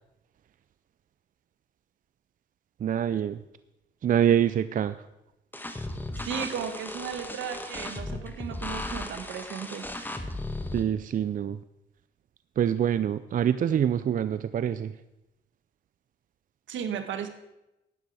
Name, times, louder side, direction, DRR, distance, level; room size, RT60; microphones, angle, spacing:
voice 1, 2.8-3.4 4.0-5.0 10.7-11.6 12.6-14.9, right 9 dB, 45° right, 13 dB, 0.4 m, -25 dB
sound 1, 5.5-10.8, left 1 dB, 10° left, 1.3 m, -36 dB
voice 2, 6.2-9.9 16.7-17.3, right 7 dB, 70° right, 8 dB, 1.4 m, -35 dB
12.0 x 9.3 x 4.8 m, 0.93 s
cardioid pair, 90°, 20 cm